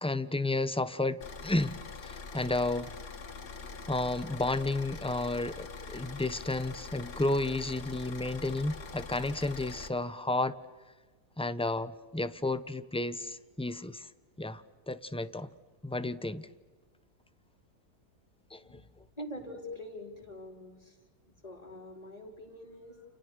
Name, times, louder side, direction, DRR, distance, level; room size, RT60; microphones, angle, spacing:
voice 1, 0.0-3.0 3.9-10.6 11.4-14.1 14.4-15.5 15.8-16.5 18.5-18.8, left 2 dB, 5° left, 13 dB, 0.6 m, -32 dB
Car / Idling, 1.2-9.9, left 4 dB, 80° left, 2.6 m, -44 dB
voice 2, 19.2-21.0 21.4-23.0, left 1 dB, 20° left, 2 dB, 4.2 m, -44 dB
30.0 x 29.5 x 6.4 m, 1.3 s
omnidirectional pair, 1.7 m